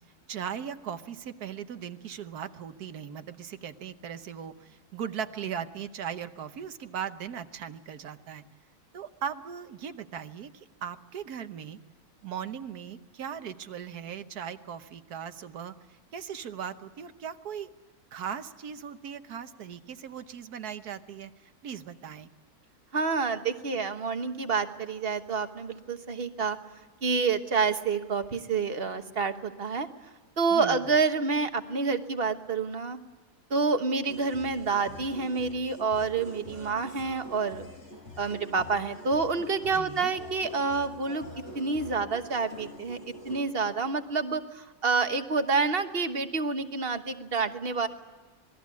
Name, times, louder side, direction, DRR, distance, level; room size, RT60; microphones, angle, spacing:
voice 1, 0.3-8.4 8.9-11.8 12.2-15.7 16.1-17.7 18.1-21.3 21.6-22.3 30.5-30.9 39.7-40.1, right 8 dB, 80° right, 10 dB, 1.5 m, -38 dB
voice 2, 22.9-26.6 27.0-29.9 30.4-33.0 33.5-37.7 38.2-41.2 41.5-43.0 43.2-47.9, right 4 dB, 40° right, 8 dB, 1.4 m, -28 dB
sound 1, 34.1-43.4, left 1 dB, 45° left, 6.5 m, -45 dB
26.5 x 20.5 x 8.4 m, 1.3 s
omnidirectional pair, 1.6 m